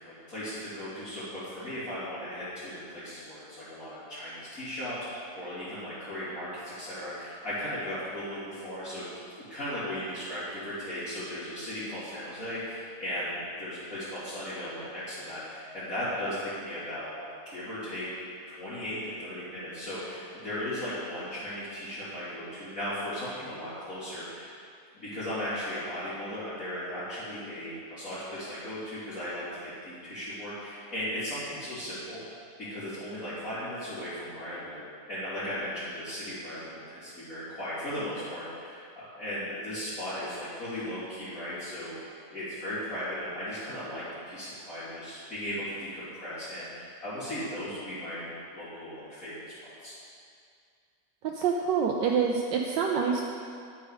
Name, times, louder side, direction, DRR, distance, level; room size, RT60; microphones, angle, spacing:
voice 1, 0.0-9.1 9.4-18.1 18.5-24.5 24.9-32.2 32.6-49.3 49.6-50.0, left 1 dB, 50° left, -16 dB, 3.7 m, -37 dB
voice 2, 51.2-53.2, right 6 dB, 85° right, 0 dB, 1.4 m, -26 dB
10.5 x 8.5 x 4.9 m, 2.3 s
omnidirectional pair, 1.9 m